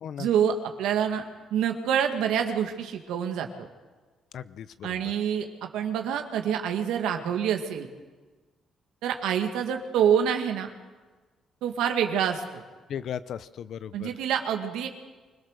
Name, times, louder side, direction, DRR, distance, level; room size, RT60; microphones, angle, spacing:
voice 1, 0.2-1.2 1.5-3.7 4.8-7.9 9.0-10.7 11.6-12.6 13.9-14.9, right 8 dB, 90° right, 5 dB, 2.0 m, -26 dB
voice 2, 4.3-5.0 12.9-14.1, left 9 dB, 70° left, 15 dB, 0.6 m, -36 dB
24.5 x 17.5 x 6.6 m, 1.3 s
cardioid pair, 90°, 0 cm